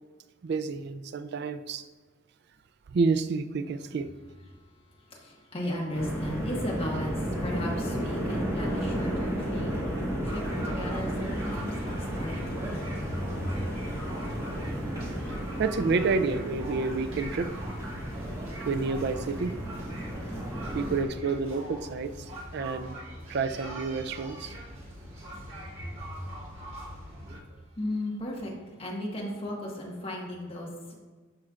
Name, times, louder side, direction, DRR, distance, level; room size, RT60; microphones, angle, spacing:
voice 1, 0.4-1.9 2.9-4.1 15.6-17.5 18.6-19.6 20.7-23.0 23.3-24.5, right 4 dB, 55° right, 0.4 m, -29 dB
voice 2, 5.1-9.9 10.2-13.5 25.7-26.1 27.8-28.5 28.8-30.9, left 1 dB, 30° left, 1.4 m, -36 dB
sound 1, 5.9-21.0, equal, 15° right, 1.8 m, -33 dB
sound 2, 6.8-14.6, left 1 dB, 60° left, 1.4 m, -44 dB
sound 3, 10.3-27.4, right 1 dB, 85° right, 1.4 m, -42 dB
12.5 x 4.4 x 2.5 m
head